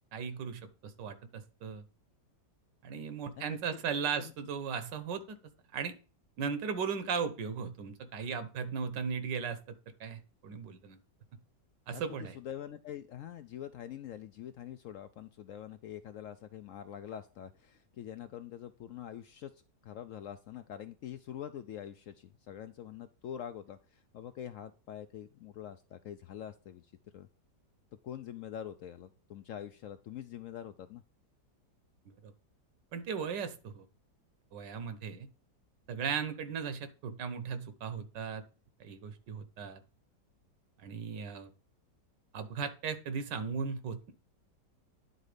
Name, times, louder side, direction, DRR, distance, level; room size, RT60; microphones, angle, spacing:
voice 1, 0.1-1.8 2.8-5.4 5.7-5.9 6.4-9.7 10.0-11.0 11.9-12.3 32.2-32.3 32.9-33.8 34.5-35.3 35.9-38.4 38.8-39.8 40.8-41.5 42.3-44.1, right 6 dB, 85° right, 11 dB, 1.6 m, -37 dB
voice 2, 11.9-19.5 19.8-27.3 28.0-31.0, left 10 dB, 75° left, 10 dB, 0.7 m, -45 dB
9.8 x 4.1 x 4.9 m, 0.35 s
omnidirectional pair, 1.8 m